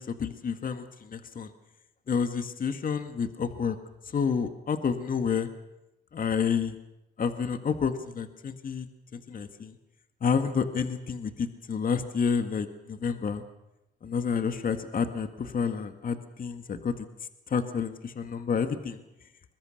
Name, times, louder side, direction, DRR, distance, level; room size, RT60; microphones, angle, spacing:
voice 1, 0.0-1.5 2.1-3.8 4.1-5.5 6.1-6.7 7.2-8.9 9.1-9.7 10.2-13.4 14.0-16.9 17.5-19.0, left 6 dB, 45° left, 8 dB, 1.9 m, -29 dB
23.0 x 21.5 x 6.6 m, 0.93 s
cardioid pair, 90°, 20 cm